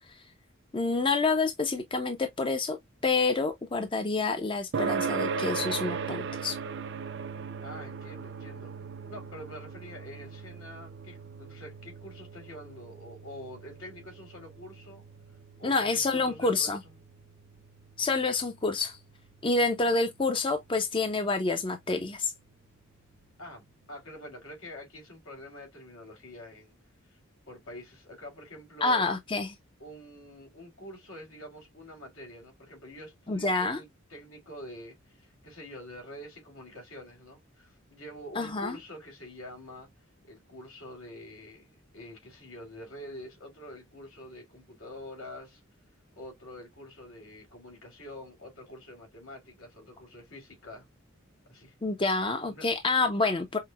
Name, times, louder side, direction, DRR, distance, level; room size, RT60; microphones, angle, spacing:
voice 1, 0.7-2.8 3.0-6.6 15.6-16.8 18.0-19.0 19.4-22.3 28.8-29.5 33.3-33.8 38.4-38.8 51.8-53.6, left 3 dB, 25° left, 0.5 m, -28 dB
sound 1, 4.7-19.6, right 5 dB, 60° right, 0.5 m, -38 dB
voice 2, 7.6-8.7 9.1-15.0 15.6-17.0 23.4-26.7 27.1-27.2 27.5-29.1 29.8-39.9 40.2-45.6 46.2-50.9 51.5-51.7 52.5-52.7, left 1 dB, 85° left, 2.4 m, -46 dB
5.7 x 2.1 x 2.2 m
head